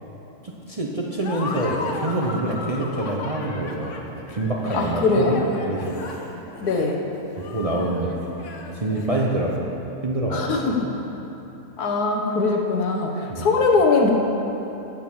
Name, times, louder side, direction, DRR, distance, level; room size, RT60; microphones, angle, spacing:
voice 1, 0.4-6.0 7.5-8.2 8.7-9.7 10.0-10.6 13.3-13.5, right 2 dB, 30° right, -2 dB, 0.7 m, -26 dB
Laughter, 1.2-9.5, left 3 dB, 55° left, 1.2 m, -35 dB
voice 2, 4.7-5.4 6.6-7.0 10.3-10.9 11.8-14.1, left 3 dB, 85° left, 1 dB, 1.7 m, -21 dB
9.0 x 8.2 x 7.2 m, 3.0 s
omnidirectional pair, 1.6 m